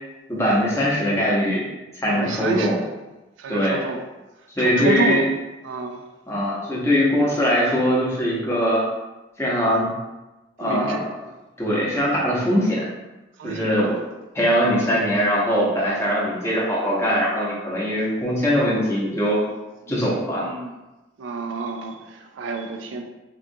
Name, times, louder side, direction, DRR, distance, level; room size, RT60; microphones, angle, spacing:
voice 1, 0.3-1.7 2.0-2.7 3.5-3.8 4.5-5.2 6.3-8.8 9.4-9.9 10.6-11.1 11.6-12.9 13.4-13.9 14.3-19.4 19.9-20.5, equal, 15° left, -6 dB, 0.8 m, -21 dB
voice 2, 2.1-2.9 3.4-4.0 4.6-5.2 5.6-6.1 7.2-7.4 10.6-11.4 13.4-14.0 18.5-18.9 19.9-20.7 21.2-23.0, right 3 dB, 85° right, 5 dB, 0.4 m, -29 dB
3.7 x 2.4 x 2.6 m, 1.1 s
head